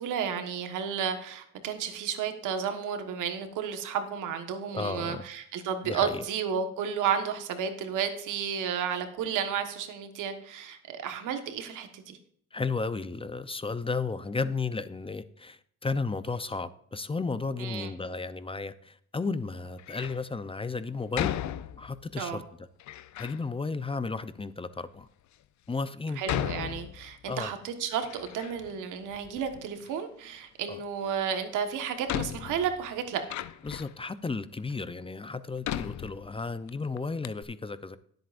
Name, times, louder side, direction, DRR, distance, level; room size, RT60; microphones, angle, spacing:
voice 1, 0.0-12.2 17.6-17.9 22.2-22.4 26.2-33.2, right 7 dB, 90° right, 1.5 m, -32 dB
voice 2, 4.7-5.2 5.8-6.2 12.5-21.4 21.8-22.7 23.2-25.1 25.7-26.2 27.3-27.5 30.7-30.8 33.6-38.0, left 4 dB, 20° left, 0.6 m, -33 dB
Door, 19.8-20.3 21.1-22.1 22.8-23.4 24.2-24.3 25.0-25.1 26.2-27.4 27.7-28.8 29.1-29.9 31.3-31.4 32.1-34.0 34.7-34.8 35.6-36.7 37.0-37.1 37.2-37.4, left 11 dB, 70° left, 0.7 m, -36 dB
17.5 x 7.9 x 2.6 m
cardioid pair, 90°, 30 cm